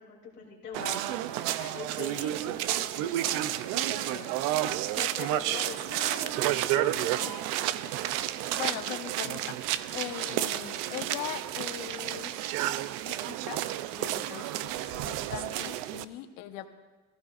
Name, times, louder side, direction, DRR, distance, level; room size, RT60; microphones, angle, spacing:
voice 1, 0.0-4.4 4.9-7.9 14.5-14.8, left 6 dB, 35° left, -4 dB, 3.0 m, -44 dB
sound 1, 0.7-16.0, right 13 dB, 75° right, 0.6 m, -31 dB
voice 2, 6.9-7.3 8.5-9.6 9.9-12.3 13.0-13.6 13.9-16.7, left 12 dB, 90° left, 7 dB, 1.1 m, -40 dB
20.5 x 15.0 x 2.5 m, 1.3 s
cardioid pair, 180°, 32 cm